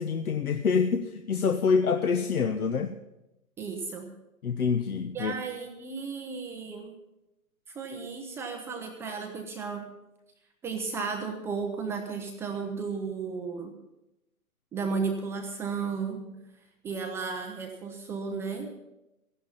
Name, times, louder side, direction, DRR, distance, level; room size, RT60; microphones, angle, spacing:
voice 1, 0.0-2.9 4.4-5.3, left 5 dB, 80° left, 7 dB, 1.1 m, -26 dB
voice 2, 3.6-4.1 5.1-6.9 7.7-9.9 10.6-13.8 14.7-16.4 16.8-18.7, right 5 dB, 5° right, 2 dB, 0.5 m, -34 dB
14.5 x 11.5 x 5.6 m, 0.92 s
hypercardioid pair, 135°, 43 cm